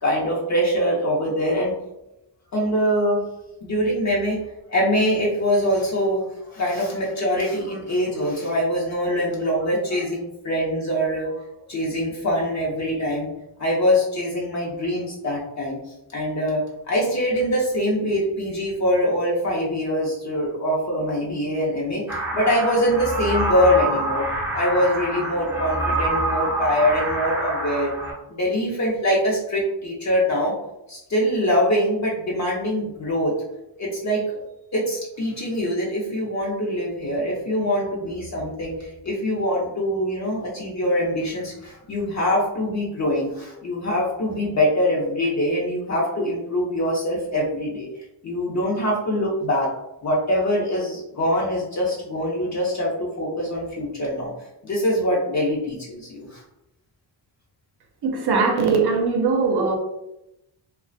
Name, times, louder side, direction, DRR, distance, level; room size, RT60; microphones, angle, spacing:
voice 1, 0.0-1.7 2.5-3.2 3.6-4.4 4.7-6.2 6.5-11.4 11.7-13.3 13.6-15.8 16.1-24.2 24.5-27.9 28.3-30.5 30.9-33.4 33.8-34.2 34.7-47.9 48.2-49.7 50.0-54.3 54.6-56.4, equal, 40° left, -4 dB, 0.6 m, -23 dB
sound 1, 22.1-28.1, right 1 dB, 5° right, 0.5 m, -26 dB
voice 2, 58.0-59.8, right 4 dB, 65° right, 2 dB, 0.6 m, -20 dB
2.4 x 2.1 x 2.5 m, 0.87 s
cardioid pair, 105°, 43 cm